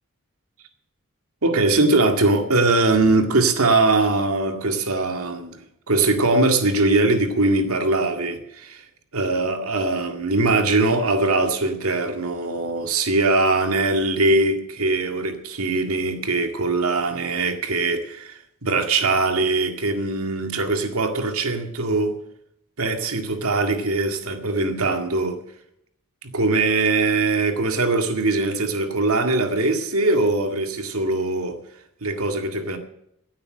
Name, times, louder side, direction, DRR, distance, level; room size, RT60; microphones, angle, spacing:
voice 1, 1.4-5.6 5.9-8.8 9.1-22.1 22.8-25.4 26.3-31.6 32.0-32.8, right 2 dB, 80° right, 6 dB, 2.1 m, -21 dB
16.0 x 8.8 x 6.6 m, 0.76 s
head